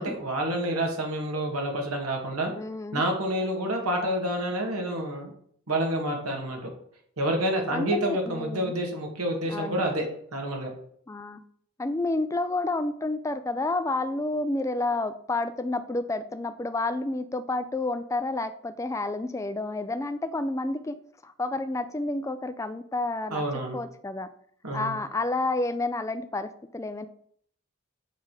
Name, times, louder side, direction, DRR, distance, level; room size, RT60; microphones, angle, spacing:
voice 1, 0.0-2.5 2.9-5.3 5.7-6.6 7.2-10.1 10.3-10.7 23.3-23.8 24.6-25.0, right 1 dB, 85° right, 2 dB, 1.9 m, -28 dB
voice 2, 2.5-3.0 7.7-8.7 9.5-9.8 11.1-11.4 11.8-21.0 21.2-23.4 23.7-24.3 24.7-27.1, left 2 dB, 15° left, 9 dB, 0.3 m, -30 dB
7.4 x 3.6 x 6.1 m, 0.65 s
head